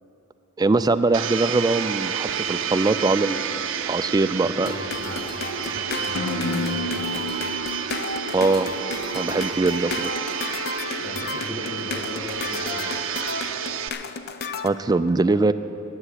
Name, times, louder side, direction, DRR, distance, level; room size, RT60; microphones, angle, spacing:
voice 1, 0.6-3.6 3.9-4.7 8.3-8.7 9.1-10.1 14.6-15.5, right 3 dB, 20° right, 11 dB, 0.3 m, -22 dB
Domestic sounds home sounds, 1.1-13.9, right 7 dB, 65° right, 0.6 m, -30 dB
voice 2, 4.3-7.1 11.0-13.0, left 1 dB, 20° left, -3 dB, 1.5 m, -38 dB
sound 1, 4.6-14.7, left 4 dB, 50° left, 0.5 m, -33 dB
sound 2, 6.1-9.9, left 2 dB, 70° left, 1.0 m, -32 dB
12.0 x 7.9 x 9.9 m, 2.9 s
head